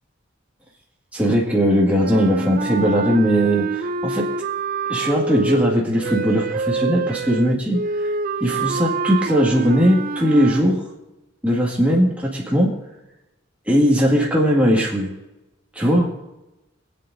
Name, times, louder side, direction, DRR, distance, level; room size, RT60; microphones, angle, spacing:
voice 1, 1.1-4.3 4.9-7.8 8.4-10.8 11.4-12.7 13.7-15.1 15.8-16.1, equal, 5° right, -4 dB, 2.0 m, -19 dB
sound 1, 2.0-10.7, right 4 dB, 45° right, 0.5 m, -26 dB
23.0 x 8.9 x 2.7 m, 0.99 s
head